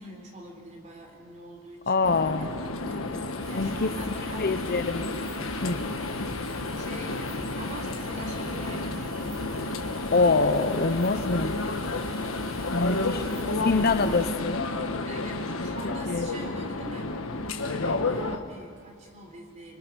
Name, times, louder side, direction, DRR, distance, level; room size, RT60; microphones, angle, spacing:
voice 1, 0.0-2.5 2.9-4.9 5.9-9.7 11.4-12.2 13.0-14.0 15.1-17.1 17.6-19.8, right 1 dB, 35° right, 2 dB, 3.8 m, -45 dB
voice 2, 1.9-2.5 3.5-3.9 4.4-5.1 5.6-5.8 10.1-11.5 12.7-13.2 13.6-14.6 15.6-16.3, left 3 dB, 50° left, 10 dB, 0.9 m, -25 dB
sound 1, 2.0-18.4, left 2 dB, 80° left, 1.5 m, -31 dB
sound 2, 3.4-14.3, right 1 dB, 80° right, 3.5 m, -43 dB
28.0 x 22.0 x 6.4 m, 2.2 s
head